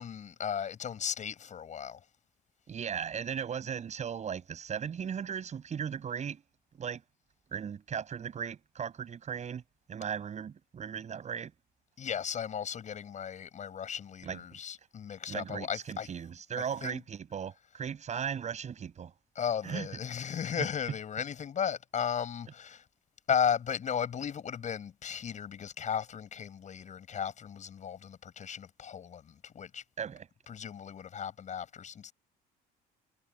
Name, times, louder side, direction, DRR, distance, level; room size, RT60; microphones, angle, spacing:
voice 1, 0.0-2.0 12.0-16.1 16.8-17.0 19.4-22.8 23.3-29.8 30.5-32.1, left 8 dB, 45° left, 7.2 m, -35 dB
voice 2, 2.7-6.4 6.8-7.0 7.5-9.6 9.9-11.5 14.2-14.6 15.3-19.1 19.6-19.9 20.6-20.7 30.0-30.3, right 7 dB, 45° right, 7.6 m, -37 dB
cardioid pair, 110°, 17 cm